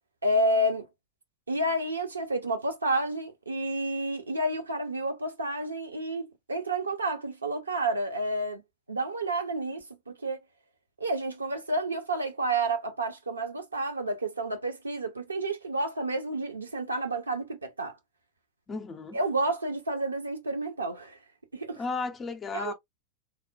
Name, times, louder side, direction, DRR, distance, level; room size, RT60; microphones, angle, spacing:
voice 1, 0.2-0.9 1.5-8.6 8.9-10.4 11.0-18.0 19.1-21.2 21.5-21.8 22.5-22.7, right 1 dB, 80° right, 0.7 m, -30 dB
voice 2, 18.7-19.2 21.8-22.7, left 4 dB, 20° left, 0.5 m, -34 dB
3.4 x 2.1 x 2.5 m
figure-of-eight pair, 90°, 0 cm